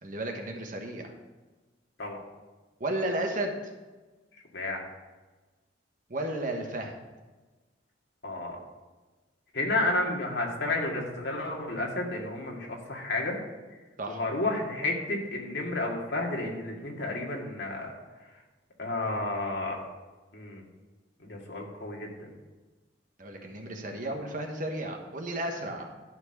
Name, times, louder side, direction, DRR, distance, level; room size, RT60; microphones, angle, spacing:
voice 1, 0.0-1.1 2.8-3.5 6.1-6.9 14.0-14.2 23.2-25.8, right 1 dB, 45° right, 2 dB, 1.3 m, -33 dB
voice 2, 8.2-8.6 9.5-13.4 14.1-17.9 18.8-19.9 20.3-20.6 21.2-22.3, left 2 dB, 65° left, -1 dB, 2.0 m, -31 dB
12.0 x 4.6 x 6.5 m, 1.2 s
head